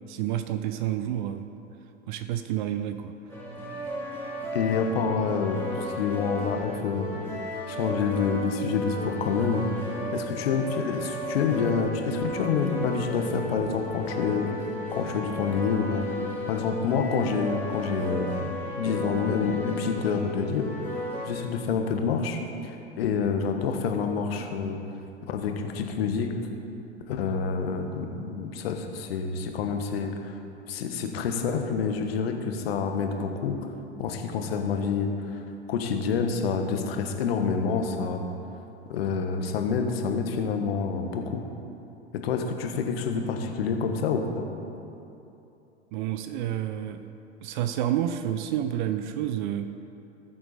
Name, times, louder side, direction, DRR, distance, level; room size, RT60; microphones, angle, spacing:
voice 1, 0.1-1.5 2.1-3.1 45.9-47.1 47.4-49.7, right 11 dB, 45° right, 10 dB, 0.6 m, -29 dB
sound 1, 3.3-21.3, left 1 dB, 5° left, 2.6 m, -34 dB
voice 2, 4.5-7.1 7.7-9.7 10.1-14.5 14.9-16.1 16.5-20.7 21.3-24.8 25.3-26.3 27.1-30.4 30.7-33.6 34.0-35.4 35.7-38.2 38.9-41.4 42.1-44.4, left 5 dB, 60° left, 4 dB, 1.4 m, -27 dB
18.5 x 7.6 x 4.1 m, 2.8 s
figure-of-eight pair, 90°, 35 cm